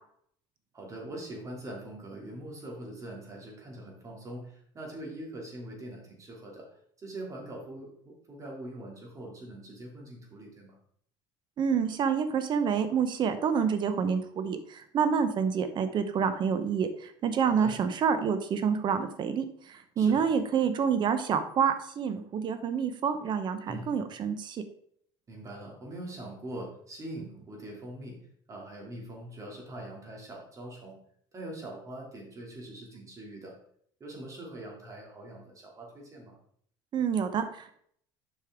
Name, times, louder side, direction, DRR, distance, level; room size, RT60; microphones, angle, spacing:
voice 1, 0.7-6.7 7.0-10.8 17.4-17.7 20.0-20.3 23.6-23.9 25.3-28.2 28.5-31.0 31.3-33.6 34.0-36.4, right 1 dB, 30° right, -1 dB, 2.8 m, -42 dB
voice 2, 11.6-24.6 36.9-37.8, right 7 dB, 45° right, 10 dB, 0.9 m, -28 dB
7.7 x 5.5 x 3.6 m, 0.65 s
cardioid pair, 115°, 11 cm